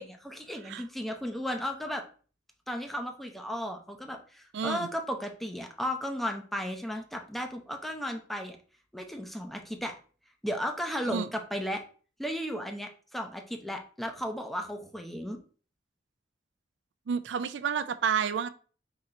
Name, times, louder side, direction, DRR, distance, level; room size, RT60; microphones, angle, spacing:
voice 1, 0.0-2.0 2.7-8.6 8.9-9.9 10.4-11.8 12.2-15.4, equal, ahead, 0.6 m, -35 dB
voice 2, 4.5-4.9 11.1-11.3 17.1-18.5, right 7 dB, 75° right, 0.4 m, -30 dB
3.9 x 2.9 x 4.2 m
head